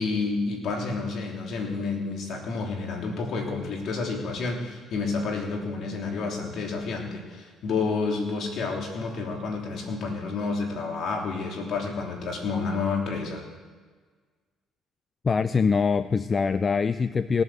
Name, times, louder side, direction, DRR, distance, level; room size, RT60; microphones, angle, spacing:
voice 1, 0.0-13.4, left 4 dB, 60° left, 1 dB, 3.3 m, -30 dB
voice 2, 15.2-17.4, left 5 dB, 35° left, 14 dB, 0.4 m, -23 dB
18.0 x 8.0 x 7.6 m, 1.5 s
cardioid pair, 90°, 0 cm